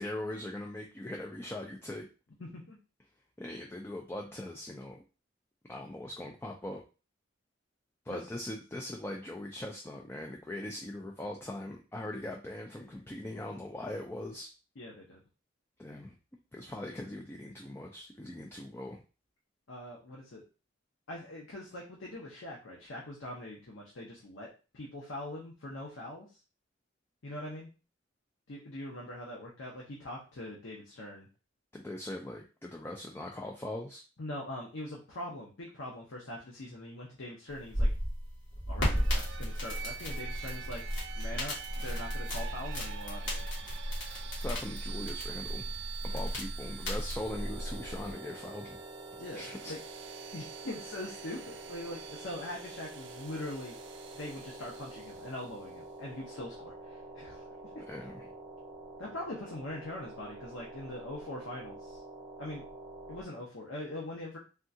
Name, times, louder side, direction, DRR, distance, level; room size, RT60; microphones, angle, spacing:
voice 1, 0.0-2.1 3.4-5.0 5.7-6.8 8.1-14.5 15.8-16.2 16.5-19.0 31.7-34.0 44.4-45.7 46.0-48.8 49.3-49.7 57.9-58.3, left 1 dB, 10° left, 0 dB, 0.3 m, -40 dB
voice 2, 2.4-2.8 8.1-8.2 14.8-15.2 19.7-20.4 21.1-24.5 24.7-26.3 27.2-27.7 28.5-31.3 34.2-37.9 38.7-40.8 41.1-43.4 46.1-46.2 49.2-49.8 50.3-53.8 54.1-57.5 57.7-57.8 59.0-62.0 62.4-62.6 63.1-64.4, left 1 dB, 90° left, -3 dB, 0.8 m, -42 dB
sound 1, 37.5-48.1, equal, 75° left, 1.6 m, -35 dB
sound 2, 38.8-55.6, right 9 dB, 65° right, 0.3 m, -47 dB
sound 3, 47.2-63.2, right 2 dB, 30° right, 0.7 m, -47 dB
3.5 x 2.3 x 2.7 m, 0.33 s
head